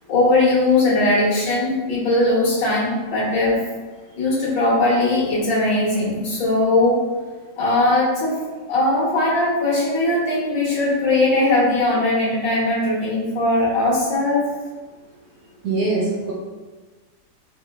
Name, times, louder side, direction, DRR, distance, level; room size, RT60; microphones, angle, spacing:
voice 1, 0.1-3.6 4.2-7.0 7.6-8.4 8.7-14.5, left 2 dB, 85° left, -6 dB, 1.7 m, -19 dB
voice 2, 15.6-16.3, right 3 dB, 70° right, -4 dB, 0.9 m, -22 dB
4.8 x 2.2 x 2.2 m, 1.3 s
omnidirectional pair, 1.9 m